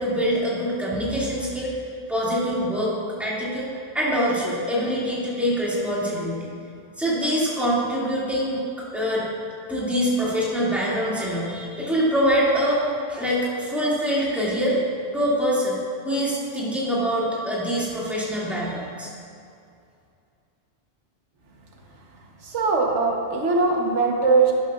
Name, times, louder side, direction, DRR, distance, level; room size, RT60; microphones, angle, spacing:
voice 1, 0.0-1.7 2.1-2.9 3.2-6.5 7.0-8.6 8.9-9.3 9.7-14.8 15.1-15.8 16.0-19.1, equal, ahead, -8 dB, 2.2 m, -24 dB
voice 2, 22.4-24.5, right 4 dB, 85° right, 0 dB, 1.4 m, -21 dB
12.0 x 10.5 x 2.4 m, 2.4 s
omnidirectional pair, 1.2 m